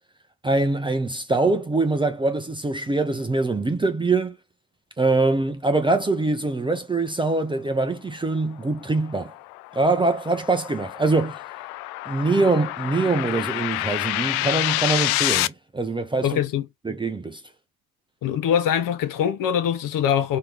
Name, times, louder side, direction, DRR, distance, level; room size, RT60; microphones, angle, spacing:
voice 1, 0.4-4.4 5.0-9.3 9.7-11.4 12.1-16.4 16.8-17.4, right 3 dB, 10° right, 0.6 m, -23 dB
sound 1, 8.6-15.5, left 19 dB, 70° left, 0.5 m, -28 dB
voice 2, 16.2-16.7 18.2-20.4, left 9 dB, 45° left, 0.9 m, -23 dB
4.3 x 3.3 x 3.4 m
hypercardioid pair, 70°, 46 cm